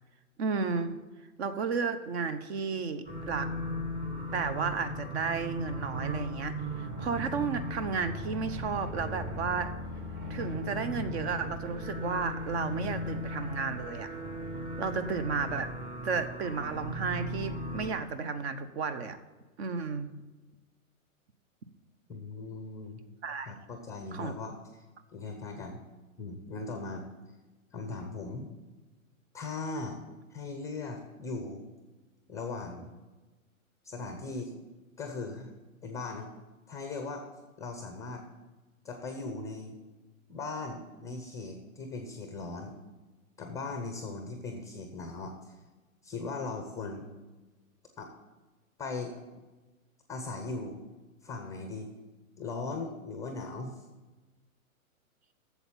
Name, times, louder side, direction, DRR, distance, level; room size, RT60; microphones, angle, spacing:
voice 1, 0.4-1.0 1.4-3.5 4.3-9.7 10.3-14.1 14.8-15.7 16.0-19.2 19.6-20.1 23.2-23.5 24.1-24.3, right 5 dB, 50° right, 12 dB, 1.0 m, -33 dB
sound 1, 3.1-17.9, equal, 20° right, 1.1 m, -37 dB
voice 2, 22.1-23.0 23.5-24.8 25.1-25.8 26.2-27.0 27.7-28.5 29.3-30.0 30.3-31.6 32.3-32.9 33.8-34.5 35.0-35.5 35.8-36.3 36.7-37.3 37.6-38.2 38.8-39.7 40.3-42.7 43.4-45.6 46.0-47.1 48.0-48.1 48.8-49.1 50.1-50.8 51.2-51.9 52.4-53.8, left 3 dB, 10° left, 5 dB, 0.5 m, -38 dB
8.1 x 7.2 x 7.2 m, 1.2 s
hypercardioid pair, 140°, 42 cm